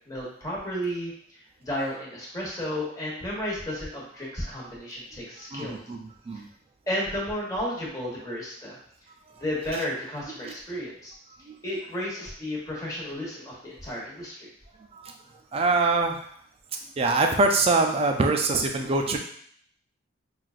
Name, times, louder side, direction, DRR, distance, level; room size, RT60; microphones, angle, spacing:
voice 1, 0.1-5.8 6.9-8.8 9.4-11.1 11.6-14.5, equal, 20° left, -5 dB, 1.3 m, -33 dB
voice 2, 5.5-6.0 6.3-6.5 10.4-10.5 14.9-15.1 15.5-16.2 17.0-19.2, right 3 dB, 30° right, 3 dB, 0.4 m, -23 dB
5.6 x 2.4 x 2.4 m, 0.62 s
head